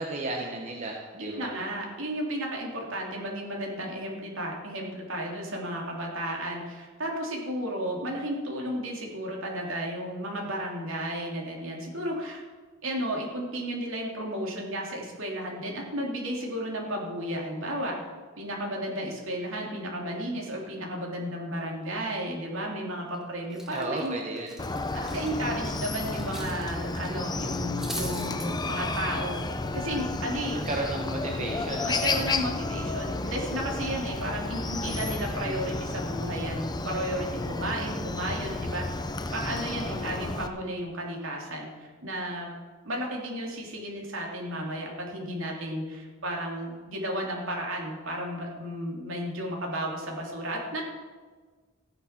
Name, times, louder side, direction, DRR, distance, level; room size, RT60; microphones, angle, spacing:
voice 1, 0.0-1.5 23.7-24.5 30.5-32.0, right 2 dB, 35° right, 0 dB, 1.3 m, -33 dB
voice 2, 1.2-12.4 12.8-18.0 18.4-24.1 24.9-29.4 29.7-30.6 31.8-39.0 39.3-42.5 42.8-50.8, equal, 65° right, -1 dB, 3.3 m, -33 dB
Cutlery silverware, 22.9-23.2 23.5-26.6 26.9-27.1 27.5-28.5, equal, ahead, 1.6 m, -41 dB
Chicken rooster, 24.6-40.5, left 2 dB, 20° left, 0.6 m, -32 dB
15.0 x 10.0 x 6.0 m, 1.5 s
head